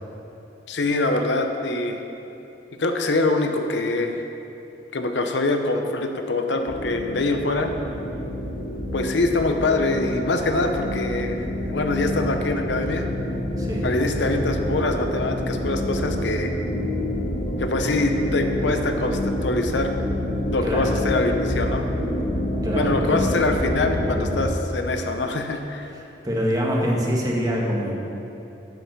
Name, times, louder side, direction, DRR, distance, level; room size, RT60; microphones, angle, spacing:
voice 1, 0.7-2.0 2.8-4.2 4.9-7.7 8.9-13.1 13.8-16.5 17.6-19.9 20.5-21.9 22.7-25.9, left 2 dB, 75° left, 5 dB, 0.8 m, -24 dB
sound 1, 6.7-24.5, left 1 dB, 50° left, 1.6 m, -27 dB
voice 2, 20.6-20.9 22.6-23.3 25.9-28.0, equal, 20° right, -2 dB, 1.4 m, -25 dB
10.5 x 5.7 x 7.3 m, 2.9 s
head